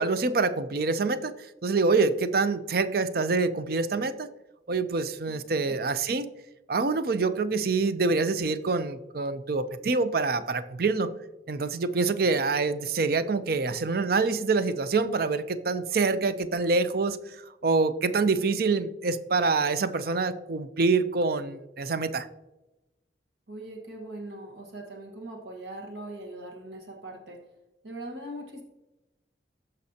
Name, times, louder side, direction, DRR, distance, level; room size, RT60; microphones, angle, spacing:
voice 1, 0.0-1.3 1.6-4.3 4.7-6.3 6.7-11.1 11.5-17.2 17.6-22.3, right 3 dB, 55° right, 12 dB, 0.5 m, -26 dB
voice 2, 5.3-5.9 23.5-27.4 27.8-28.6, right 1 dB, 75° right, 0 dB, 1.4 m, -41 dB
14.5 x 5.3 x 2.8 m, 0.98 s
head